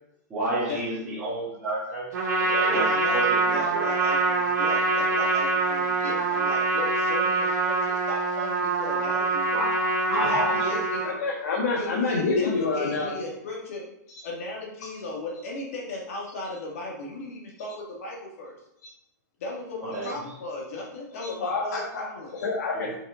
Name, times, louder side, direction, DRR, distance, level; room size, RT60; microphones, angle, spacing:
voice 1, 0.3-2.1 2.4-3.8 9.5-10.8 19.9-20.1 22.7-22.9, right 1 dB, 10° right, -13 dB, 1.8 m, -30 dB
Trumpet, 2.1-11.1, right 3 dB, 70° right, 2.1 m, -24 dB
voice 2, 2.7-3.2 3.5-9.7 10.1-11.1 11.7-13.8 14.2-18.6 19.4-22.3, left 2 dB, 50° left, -2 dB, 2.1 m, -36 dB
voice 3, 11.0-13.1 21.2-22.1 22.3-23.0, left 3 dB, 70° left, -2 dB, 1.5 m, -27 dB
6.0 x 5.8 x 3.8 m, 0.83 s
supercardioid pair, 180°, 10 cm